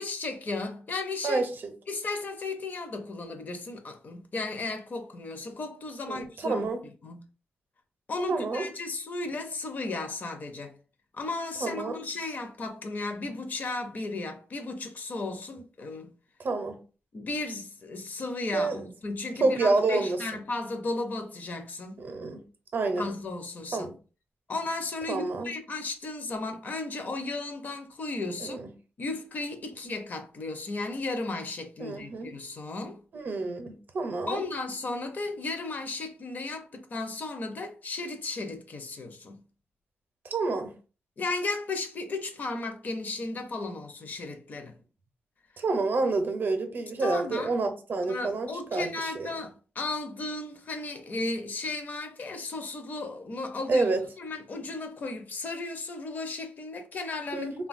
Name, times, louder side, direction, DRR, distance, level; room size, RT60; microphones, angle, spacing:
voice 1, 0.0-1.4 1.9-6.7 7.0-7.2 8.1-10.8 11.1-16.1 17.1-22.0 23.0-23.9 24.5-28.6 29.0-33.0 34.3-39.4 41.2-44.8 47.0-47.5 48.1-53.9 54.2-57.5, left 3 dB, 45° left, 0.5 m, -35 dB
voice 2, 1.2-1.7 6.1-6.8 8.3-8.6 11.6-12.0 16.4-16.8 18.5-18.9 19.4-20.2 22.0-22.4 22.7-23.1 23.7-23.9 25.1-25.5 28.4-28.7 31.8-32.3 33.1-34.4 40.2-40.7 45.6-49.3 53.7-54.0 57.3-57.5, right 3 dB, 55° right, 0.6 m, -28 dB
3.2 x 2.2 x 2.5 m
wide cardioid pair, 125°, 4 cm